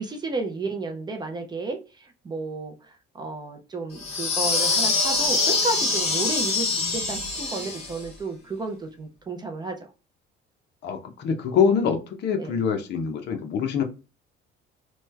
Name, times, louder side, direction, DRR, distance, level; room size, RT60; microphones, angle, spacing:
voice 1, 0.0-2.7 3.1-9.8 12.4-12.6, right 3 dB, 20° right, 0.5 m, -32 dB
sound 1, 4.0-8.0, left 3 dB, 30° left, 1.2 m, -24 dB
voice 2, 10.8-13.8, left 6 dB, 60° left, 0.7 m, -24 dB
3.1 x 2.2 x 3.2 m
cardioid pair, 155°, 20 cm